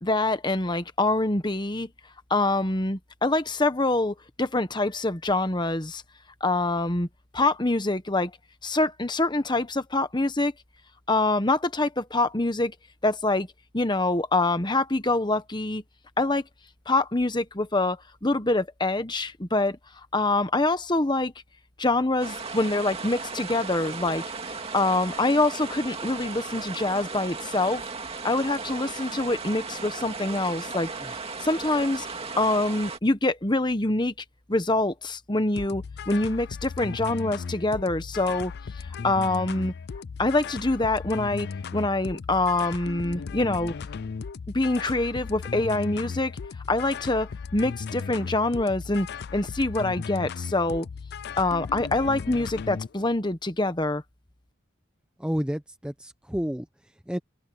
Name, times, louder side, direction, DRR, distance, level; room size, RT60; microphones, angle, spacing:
voice 1, 0.0-1.9 2.3-6.0 6.4-7.1 7.3-8.3 8.6-10.5 11.1-12.7 13.0-13.5 13.7-15.8 16.2-16.4 16.9-19.8 20.1-21.3 21.8-24.2 24.7-27.8 28.2-30.9 31.4-32.1 32.4-34.1 34.5-38.5 39.0-39.7 40.2-41.5 41.7-43.7 44.5-46.3 46.7-49.1 49.3-50.9 51.4-54.0, left 2 dB, 20° left, 1.2 m, -25 dB
sound 1, 22.2-33.0, right 4 dB, 30° right, 2.3 m, -36 dB
sound 2, 35.6-52.9, left 5 dB, 50° left, 0.4 m, -36 dB
voice 2, 55.2-57.2, equal, 5° right, 0.6 m, -31 dB
open air
head